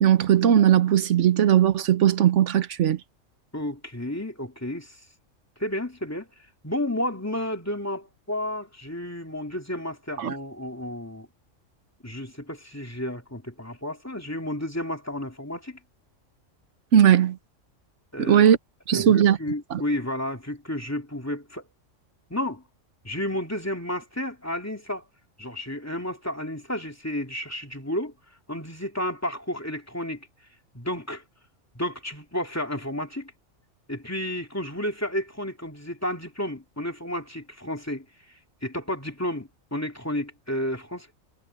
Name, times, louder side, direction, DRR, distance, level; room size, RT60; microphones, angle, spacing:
voice 1, 0.0-3.0 10.2-10.3 16.9-17.4 18.2-18.6 18.9-19.4 19.7-19.8, right 9 dB, 70° right, 1.2 m, -18 dB
voice 2, 3.5-5.0 5.6-6.3 6.6-11.3 12.0-15.8 18.1-18.5 18.9-21.6 22.3-22.6 23.0-25.0 25.4-28.1 28.5-30.3 30.7-31.2 31.7-33.3 33.9-38.1 38.6-41.1, left 1 dB, 10° left, 2.4 m, -31 dB
omnidirectional pair, 1.3 m